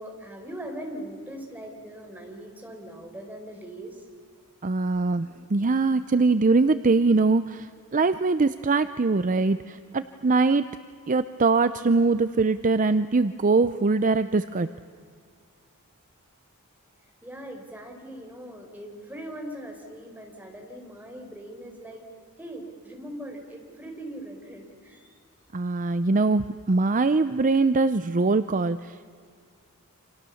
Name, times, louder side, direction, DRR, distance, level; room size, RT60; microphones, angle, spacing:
voice 1, 0.0-4.1 17.2-22.0 22.4-25.1, right 1 dB, 10° right, 1 dB, 4.6 m, -40 dB
voice 2, 4.6-10.7 11.1-14.7 25.5-29.1, right 3 dB, 35° right, 12 dB, 0.6 m, -22 dB
29.5 x 27.0 x 7.1 m, 2.2 s
head